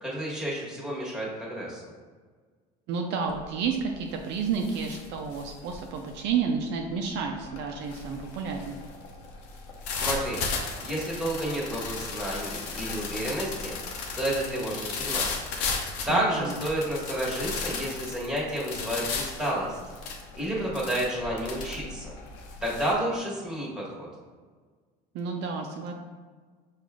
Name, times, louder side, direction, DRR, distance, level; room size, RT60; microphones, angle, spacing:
voice 1, 0.0-1.8 9.9-10.4 10.8-13.7 14.2-15.3 16.0-19.8 20.3-22.1 22.6-24.1, right 1 dB, 5° right, -6 dB, 1.5 m, -30 dB
voice 2, 2.9-8.8 16.1-16.6 25.1-25.9, right 5 dB, 60° right, 2 dB, 0.5 m, -31 dB
sound 1, 3.3-3.6 4.0-22.9, left 4 dB, 85° left, 0.7 m, -35 dB
4.8 x 2.4 x 3.6 m, 1.5 s
supercardioid pair, 90°, 20 cm